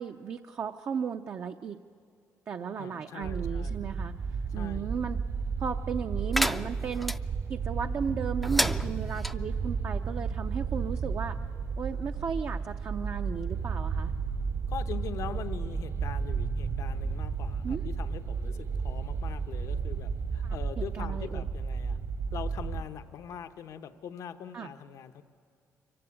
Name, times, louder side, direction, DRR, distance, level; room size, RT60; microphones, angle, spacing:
voice 1, 0.0-1.8 2.5-4.1 4.5-5.2 5.6-7.1 7.5-11.4 11.8-14.1 17.6-17.8 20.4-21.4 24.5-24.7, right 6 dB, 50° right, 6 dB, 0.6 m, -35 dB
voice 2, 2.8-3.8 4.5-4.9 14.7-22.0 22.3-25.2, left 8 dB, 80° left, 9 dB, 0.9 m, -42 dB
sound 1, 3.2-22.8, right 5 dB, 70° right, 2.1 m, -33 dB
sound 2, 6.3-7.2 8.4-9.3, equal, ahead, 0.4 m, -30 dB
24.5 x 15.5 x 8.8 m, 2.6 s
cardioid pair, 105°, 6 cm